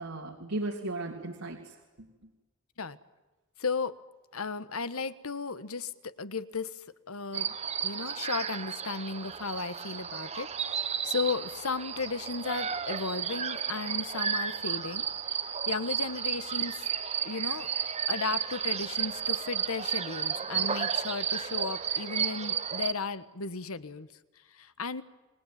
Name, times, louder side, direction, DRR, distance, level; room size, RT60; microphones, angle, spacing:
voice 1, 0.0-2.1, right 2 dB, 85° right, 1 dB, 3.0 m, -36 dB
voice 2, 3.6-3.9 4.3-7.5 7.8-15.1 15.4-16.8 17.2-17.7 18.1-24.1 24.5-25.0, left 4 dB, 85° left, 13 dB, 1.4 m, -35 dB
sound 1, 7.3-22.9, right 7 dB, 30° right, 1.1 m, -33 dB
29.5 x 21.5 x 9.4 m, 1.2 s
head